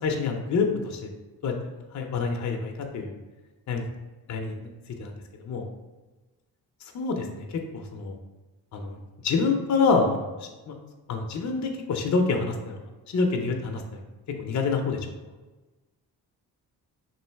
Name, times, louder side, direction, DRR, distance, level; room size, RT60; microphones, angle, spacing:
voice 1, 0.0-1.1 1.4-1.5 1.9-3.1 3.7-3.9 4.3-4.7 5.0-5.1 5.4-5.7 6.8-7.5 7.7-8.2 8.7-9.0 9.2-10.8 11.1-12.8 13.1-14.0 14.4-15.1, left 4 dB, 45° left, 3 dB, 0.6 m, -27 dB
3.1 x 2.6 x 4.4 m, 1.2 s
cardioid pair, 65°, 41 cm